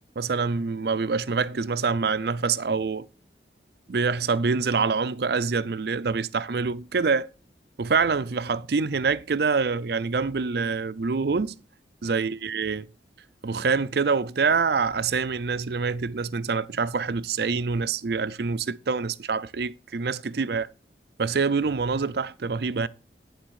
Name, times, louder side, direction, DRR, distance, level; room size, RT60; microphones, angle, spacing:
voice 1, 0.2-3.1 3.9-7.3 7.8-11.6 12.0-12.8 13.4-20.7 21.2-22.9, right 5 dB, 60° right, 0.5 m, -26 dB
11.5 x 4.1 x 6.3 m
head